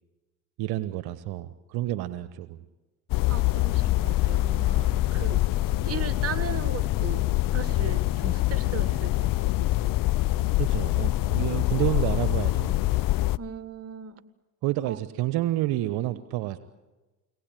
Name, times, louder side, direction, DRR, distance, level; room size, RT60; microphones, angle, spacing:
voice 1, 0.6-2.6 5.1-5.4 10.6-12.8 14.6-16.6, right 15 dB, 60° right, 12 dB, 1.1 m, -29 dB
sound 1, 3.1-13.4, left 17 dB, 50° left, 0.7 m, -25 dB
voice 2, 3.3-5.4 5.8-9.3 9.6-9.8 13.4-14.2 14.9-15.0, right 7 dB, 35° right, 10 dB, 1.8 m, -38 dB
24.0 x 18.5 x 9.1 m, 1.2 s
hypercardioid pair, 80°, 43 cm